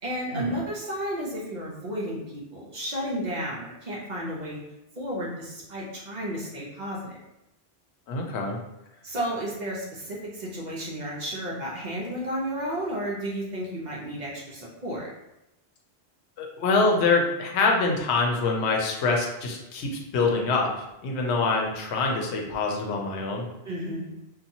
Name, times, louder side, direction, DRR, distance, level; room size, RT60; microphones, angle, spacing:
voice 1, 0.0-4.6 5.0-7.2 9.0-15.1 23.6-24.1, equal, 50° right, -4 dB, 0.6 m, -32 dB
voice 2, 8.1-8.6 16.4-23.5, left 3 dB, 85° left, 1 dB, 0.9 m, -25 dB
2.7 x 2.2 x 2.6 m, 0.90 s
omnidirectional pair, 1.1 m